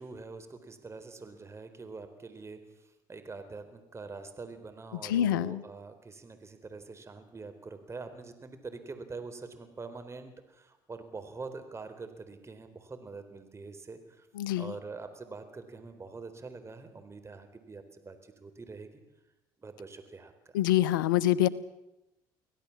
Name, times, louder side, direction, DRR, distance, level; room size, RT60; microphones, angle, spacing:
voice 1, 0.0-14.3 14.6-19.0 19.6-20.3, right 4 dB, 25° right, 8 dB, 4.0 m, -45 dB
voice 2, 5.0-5.6 14.4-14.7 20.5-21.5, left 13 dB, 90° left, 18 dB, 0.8 m, -25 dB
24.5 x 17.0 x 7.3 m, 0.91 s
hypercardioid pair, 70°, 11 cm